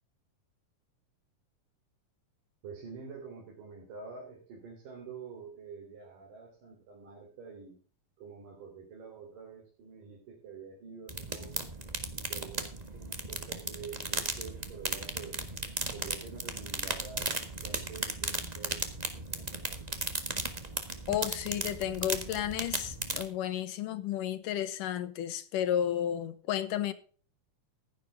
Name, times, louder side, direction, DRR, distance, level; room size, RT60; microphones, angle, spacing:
voice 1, 2.6-7.8 8.2-11.7 12.2-15.5 15.9-17.4 17.6-19.8, right 5 dB, 85° right, 4.9 m, -47 dB
sound 1, 11.1-23.3, right 2 dB, 30° right, 0.7 m, -36 dB
voice 2, 21.1-26.9, left 10 dB, 85° left, 2.7 m, -32 dB
16.0 x 10.5 x 3.6 m
omnidirectional pair, 3.7 m